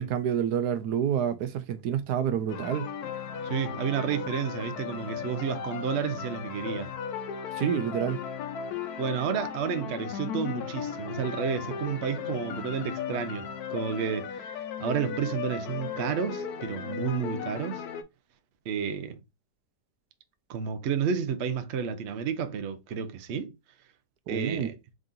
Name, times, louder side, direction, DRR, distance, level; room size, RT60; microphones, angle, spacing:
voice 1, 0.0-2.9 7.5-8.2 24.3-24.7, right 9 dB, 75° right, 1.1 m, -28 dB
sound 1, 2.5-18.0, left 7 dB, 70° left, 1.1 m, -36 dB
voice 2, 3.4-6.9 9.0-17.8 18.7-19.2 20.5-23.5 24.3-24.8, right 7 dB, 60° right, 0.7 m, -31 dB
3.7 x 3.7 x 2.6 m
omnidirectional pair, 1.8 m